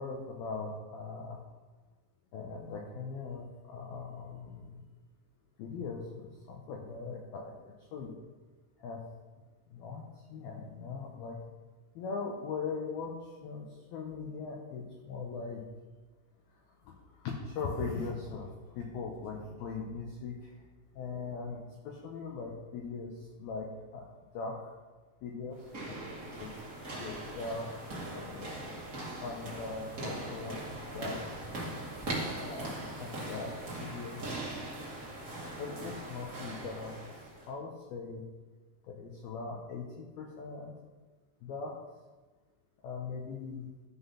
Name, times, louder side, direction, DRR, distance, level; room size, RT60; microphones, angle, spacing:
voice 1, 0.0-1.4 2.3-4.8 5.6-8.1 8.8-9.0 9.7-11.4 12.0-15.6 16.8-20.6 21.0-21.6 21.8-24.1 24.3-24.7 25.2-26.0 26.4-26.5 27.0-28.6 29.2-30.6 30.9-31.5 32.4-32.7 33.0-33.5 33.8-34.2 35.6-37.2 37.5-38.3 38.9-40.7 41.4-41.8 42.8-43.7, left 4 dB, 85° left, 0 dB, 2.1 m, -40 dB
sound 1, 25.5-37.5, right 1 dB, 65° right, 0.8 m, -40 dB
13.5 x 6.2 x 5.7 m, 1.3 s
omnidirectional pair, 5.9 m